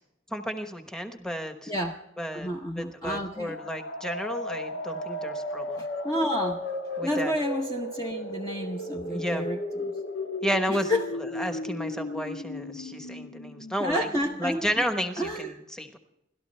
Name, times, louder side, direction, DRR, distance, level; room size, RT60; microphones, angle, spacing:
voice 1, 0.3-1.7 2.2-2.5 2.8-5.8 7.0-7.3 9.1-9.4 10.4-10.9 11.3-14.1 14.4-16.0, equal, 5° left, 6 dB, 1.1 m, -32 dB
voice 2, 1.7-2.0 2.3-3.5 6.0-6.6 7.0-9.9 10.7-11.1 13.8-14.7 15.2-15.5, equal, 20° left, 1 dB, 0.8 m, -30 dB
sound 1, 3.3-14.9, left 1 dB, 75° left, 1.4 m, -35 dB
29.5 x 13.0 x 3.3 m, 0.83 s
head